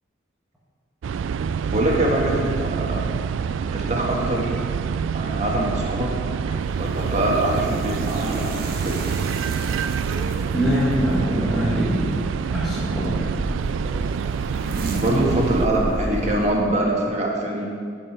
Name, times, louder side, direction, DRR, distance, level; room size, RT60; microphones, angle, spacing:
sound 1, 1.0-15.7, right 6 dB, 85° right, 0.3 m, -26 dB
voice 1, 1.7-2.9 3.7-4.5 5.1-6.1 6.8-8.5 8.8-9.0 14.6-17.7, right 1 dB, 35° right, -2 dB, 1.7 m, -23 dB
sound 2, 6.5-16.9, right 1 dB, 55° right, 1.0 m, -34 dB
voice 2, 10.5-12.2 12.5-13.1, equal, ahead, -9 dB, 1.4 m, -23 dB
10.5 x 5.5 x 6.0 m, 2.1 s
head